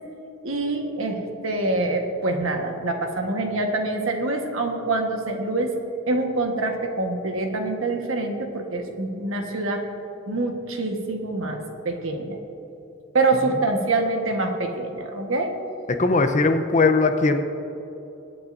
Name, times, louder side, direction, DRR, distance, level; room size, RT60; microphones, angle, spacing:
voice 1, 0.4-5.7 6.1-9.8 10.3-12.4 13.1-15.5, right 2 dB, 65° right, 3 dB, 1.3 m, -25 dB
voice 2, 15.9-17.4, left 3 dB, 35° left, 7 dB, 0.7 m, -19 dB
24.5 x 8.6 x 2.6 m, 3.0 s
head